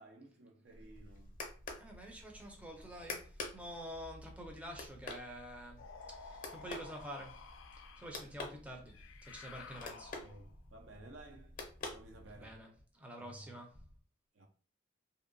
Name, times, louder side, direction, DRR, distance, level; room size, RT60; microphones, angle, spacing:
voice 1, 0.0-1.4 10.2-11.6 11.9-12.5 13.2-13.6 14.3-14.5, right 2 dB, 70° right, 0.6 m, -55 dB
sound 1, 0.7-12.6, left 3 dB, 45° left, 0.6 m, -49 dB
voice 2, 1.8-10.2 12.4-13.7, equal, 5° right, 0.5 m, -48 dB
sound 2, 5.8-8.2 8.9-10.6, left 5 dB, 85° left, 0.3 m, -53 dB
2.7 x 2.1 x 2.5 m
head